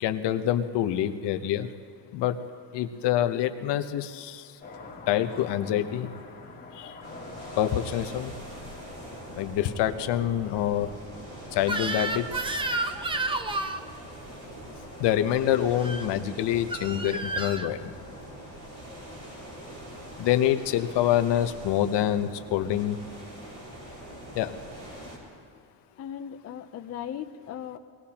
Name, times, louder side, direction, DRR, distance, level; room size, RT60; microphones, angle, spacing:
voice 1, 0.0-1.7 2.1-2.4 2.7-4.4 5.1-6.1 6.8-6.9 7.6-8.3 9.4-10.9 11.5-12.4 15.0-17.8 20.2-23.0 24.4-24.5, left 11 dB, 65° left, 9 dB, 0.9 m, -26 dB
sound 1, 4.6-10.6, left 3 dB, 20° left, 2.1 m, -45 dB
sound 2, 7.0-25.2, equal, 40° right, 4.2 m, -43 dB
Crying sobbing / Screech, 11.6-13.8 15.7-16.1 16.7-17.7, right 2 dB, 10° right, 0.5 m, -30 dB
voice 2, 26.0-27.8, left 9 dB, 35° left, 6 dB, 0.5 m, -37 dB
23.0 x 19.5 x 2.9 m, 2.2 s
cardioid pair, 145°, 44 cm